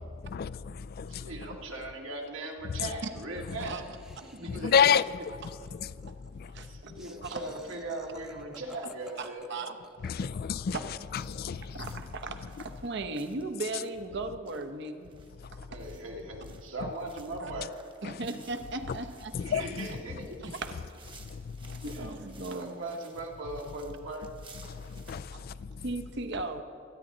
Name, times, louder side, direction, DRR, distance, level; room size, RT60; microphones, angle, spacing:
voice 1, 0.2-1.3 2.7-2.9 4.5-5.2 5.4-6.7 10.0-10.8 11.1-11.9 15.4-15.7 16.8-16.9 18.0-18.2 19.3-20.0 21.2-21.8 24.6-25.8, left 7 dB, 50° left, 0.3 m, -31 dB
voice 2, 1.1-3.8 4.2-4.9 6.6-9.5 15.7-17.7 19.4-20.5 21.9-22.1 22.5-24.3, right 2 dB, 80° right, 2.0 m, -39 dB
Laughter, 3.3-10.8, equal, 5° right, 0.7 m, -55 dB
voice 3, 6.5-6.9 7.2-7.4 9.2-10.2 10.7-10.8 11.4-15.1 15.5-15.8 17.4-17.5 18.0-19.3 20.4-21.0 21.7-22.7 25.3-25.6 25.8-26.6, right 3 dB, 60° right, 1.0 m, -37 dB
sound 1, 11.1-25.3, right 5 dB, 25° right, 1.1 m, -57 dB
24.0 x 9.9 x 3.9 m
head